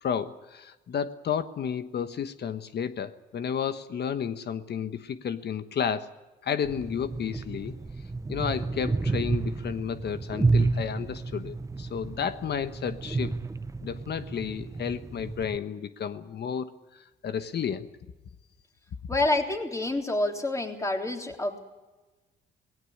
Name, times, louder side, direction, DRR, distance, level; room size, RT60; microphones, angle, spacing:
voice 1, 0.0-6.1 6.4-7.8 8.3-13.4 13.8-17.9, left 7 dB, 55° left, 11 dB, 1.2 m, -32 dB
sound 1, 6.6-15.6, right 3 dB, 15° right, 0.7 m, -30 dB
voice 2, 19.1-21.6, left 2 dB, 15° left, 3 dB, 3.6 m, -28 dB
19.0 x 17.0 x 10.0 m, 1.1 s
cardioid pair, 90°, 20 cm